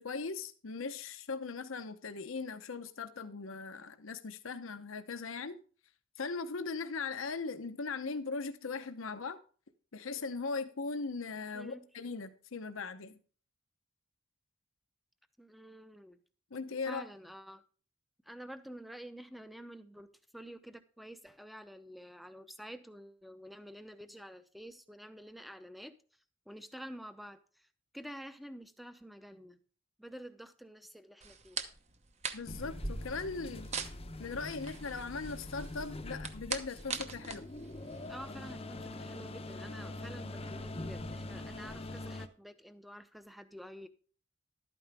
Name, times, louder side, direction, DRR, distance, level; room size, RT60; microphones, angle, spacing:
voice 1, 0.0-5.6 6.2-9.4 9.9-13.2 16.5-17.0 32.3-33.7 34.2-37.4, left 4 dB, 70° left, 0.8 m, -39 dB
voice 2, 11.5-11.9 15.4-16.2 16.9-17.6 18.2-26.0 26.5-27.7 27.9-29.6 30.0-31.6 38.1-43.9, equal, ahead, 0.7 m, -49 dB
sound 1, 31.2-38.5, right 5 dB, 35° right, 0.9 m, -42 dB
sound 2, 32.5-42.3, left 2 dB, 30° left, 0.7 m, -44 dB
12.0 x 9.2 x 3.4 m
head